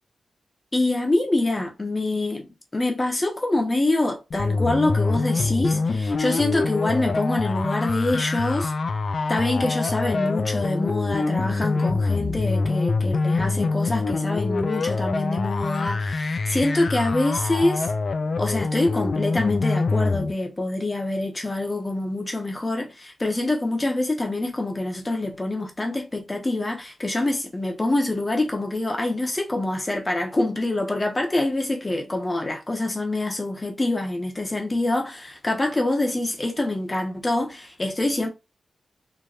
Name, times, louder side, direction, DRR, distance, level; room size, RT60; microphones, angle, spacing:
voice 1, 0.7-8.7 9.3-17.9 18.4-38.3, left 2 dB, 30° left, 1.2 m, -25 dB
sound 1, 4.3-20.3, left 3 dB, 60° left, 0.4 m, -25 dB
4.6 x 3.0 x 2.6 m
cardioid pair, 55°, 0 cm